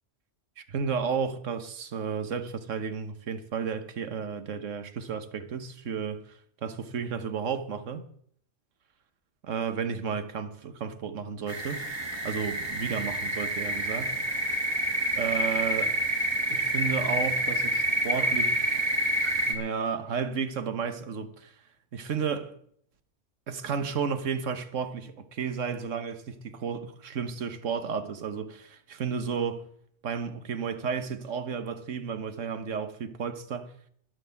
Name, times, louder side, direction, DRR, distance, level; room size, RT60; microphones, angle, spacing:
voice 1, 0.6-6.2 6.6-8.0 9.4-11.8 12.2-14.1 15.2-16.0 16.5-18.7 19.5-21.5 21.9-22.5 23.5-29.6 30.0-33.7, right 6 dB, 85° right, 1.4 m, -32 dB
sound 1, 11.5-19.6, right 1 dB, 20° right, 2.1 m, -28 dB
11.0 x 10.5 x 7.0 m
omnidirectional pair, 1.3 m